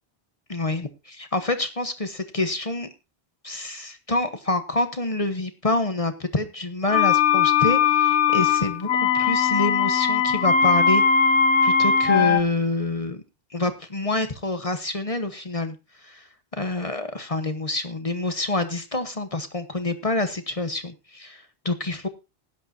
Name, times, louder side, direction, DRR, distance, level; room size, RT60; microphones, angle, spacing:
voice 1, 0.5-2.9 3.4-11.0 11.6-13.2 13.5-15.8 16.0-16.3 16.5-22.1, left 2 dB, 35° left, 9 dB, 1.2 m, -27 dB
sound 1, 6.9-12.4, left 6 dB, 85° left, 1.3 m, -19 dB
16.5 x 11.0 x 2.7 m, 0.26 s
omnidirectional pair, 1.1 m